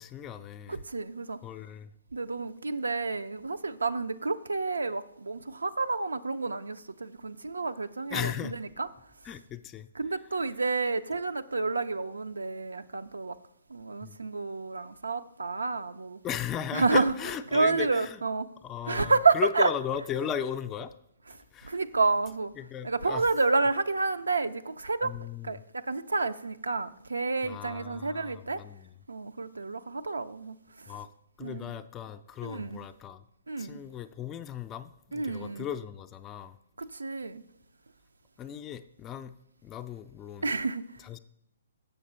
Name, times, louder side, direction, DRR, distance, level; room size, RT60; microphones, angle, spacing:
voice 1, 0.0-0.8 1.4-1.9 8.1-8.6 9.2-9.9 14.0-14.2 16.2-18.2 18.6-20.9 21.5-21.8 22.6-23.2 25.0-25.6 27.4-29.0 30.9-31.1 31.4-33.2 33.6-36.6 38.4-39.3 39.6-40.5 41.0-41.2, left 9 dB, 20° left, 0.4 m, -36 dB
voice 2, 0.7-1.4 2.1-8.9 10.0-13.4 13.7-16.2 16.7-17.1 17.5-18.5 18.9-19.7 21.6-22.5 22.8-25.1 25.4-28.6 29.1-30.6 30.8-31.0 31.4-31.7 32.4-32.8 33.5-33.8 35.1-35.7 36.8-37.4 40.4-40.8, right 3 dB, 85° right, 0.4 m, -29 dB
6.8 x 6.5 x 4.3 m
figure-of-eight pair, 130°, 0 cm